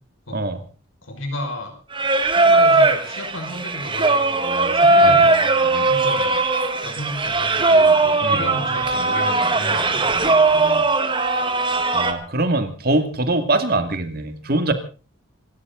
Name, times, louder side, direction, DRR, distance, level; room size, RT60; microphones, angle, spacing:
voice 1, 0.3-0.6 5.0-5.2 8.2-8.4 11.9-14.7, right 2 dB, 50° right, 8 dB, 2.4 m, -22 dB
voice 2, 1.0-1.7 2.4-6.4 6.8-10.8, left 1 dB, 90° left, 5 dB, 5.8 m, -33 dB
Singing, 1.9-12.1, right 3 dB, 25° right, 1.6 m, -18 dB
27.0 x 13.5 x 4.0 m, 0.36 s
head